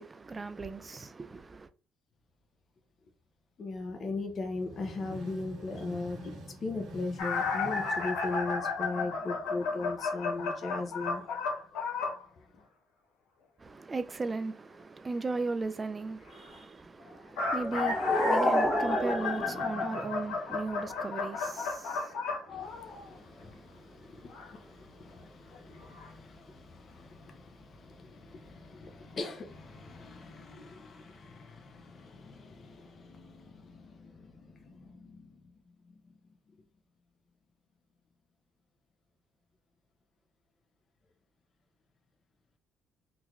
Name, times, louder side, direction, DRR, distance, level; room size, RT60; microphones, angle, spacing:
voice 1, 0.0-1.7 13.6-24.4 24.6-24.8 25.2-25.3, right 3 dB, 30° right, 0.4 m, -38 dB
voice 2, 3.6-11.3 12.4-12.5 22.5-35.4 35.9-36.0, left 3 dB, 45° left, 0.7 m, -39 dB
sound 1, 4.5-9.0, right 1 dB, 70° right, 1.6 m, -46 dB
sound 2, 7.2-12.2 17.1-23.2 24.3-24.5 25.5-25.6 26.0-26.1, left 4 dB, 75° left, 1.1 m, -33 dB
sound 3, 17.4-20.4, equal, 5° left, 0.7 m, -30 dB
3.9 x 2.2 x 3.1 m
supercardioid pair, 80°, 0 cm